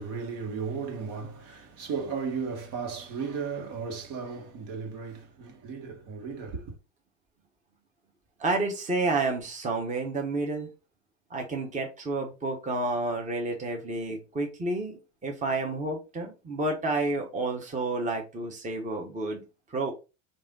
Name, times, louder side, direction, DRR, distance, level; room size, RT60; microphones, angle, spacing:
voice 1, 0.0-6.7, right 5 dB, 55° right, 1.7 m, -35 dB
voice 2, 8.4-10.7 11.3-19.4 19.7-19.9, right 2 dB, 20° right, 1.2 m, -30 dB
5.3 x 2.7 x 3.7 m
supercardioid pair, 105°, 39 cm